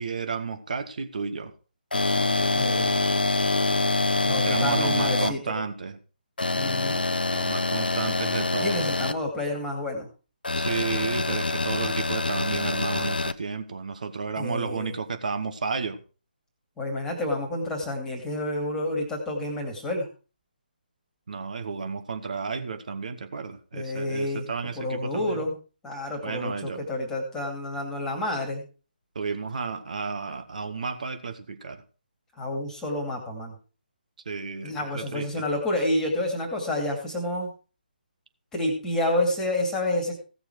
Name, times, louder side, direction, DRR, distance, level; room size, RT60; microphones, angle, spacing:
voice 1, 0.0-1.5 4.4-6.0 7.3-8.8 10.5-16.0 21.3-25.4 26.2-26.8 29.1-31.8 34.2-35.5, right 5 dB, 50° right, 8 dB, 1.6 m, -32 dB
sound 1, 1.9-5.3 6.4-9.1 10.4-13.3, left 2 dB, 65° left, 0.9 m, -25 dB
voice 2, 2.5-2.9 4.2-5.4 6.5-7.0 8.6-10.1 14.4-14.9 16.8-20.1 23.7-24.5 24.8-25.6 25.8-28.6 32.4-33.5 34.6-37.5 38.5-40.2, left 1 dB, 10° left, 1 dB, 2.5 m, -29 dB
16.5 x 7.1 x 4.7 m, 0.36 s
figure-of-eight pair, 145°, 5 cm